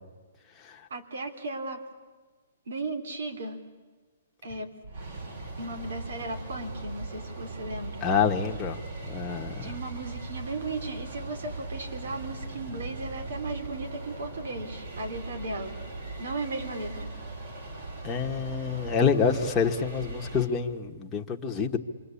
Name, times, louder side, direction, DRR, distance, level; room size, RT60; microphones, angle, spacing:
voice 1, 0.9-1.9 2.7-3.6 4.4-4.7 5.6-8.1 9.6-15.8 16.2-17.1, right 2 dB, 75° right, 7 dB, 3.6 m, -36 dB
sound 1, 4.8-20.4, right 2 dB, 55° right, 6.2 m, -39 dB
voice 2, 8.0-8.8 9.1-9.7 18.0-21.8, left 6 dB, 15° left, 0 dB, 1.4 m, -27 dB
27.5 x 24.0 x 8.5 m, 1.3 s
hypercardioid pair, 160°, 0 cm